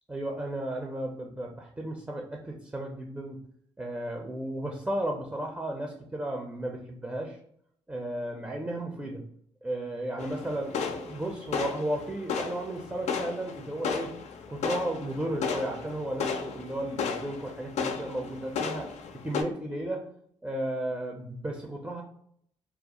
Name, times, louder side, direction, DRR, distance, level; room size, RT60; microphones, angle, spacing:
voice 1, 0.1-3.4 3.8-7.4 7.9-9.2 9.6-14.1 14.5-20.0 20.4-22.0, right 1 dB, 10° right, 1 dB, 0.5 m, -34 dB
sound 1, 10.2-19.4, left 5 dB, 65° left, 0.4 m, -34 dB
2.3 x 2.0 x 2.8 m, 0.66 s
hypercardioid pair, 45°, 13 cm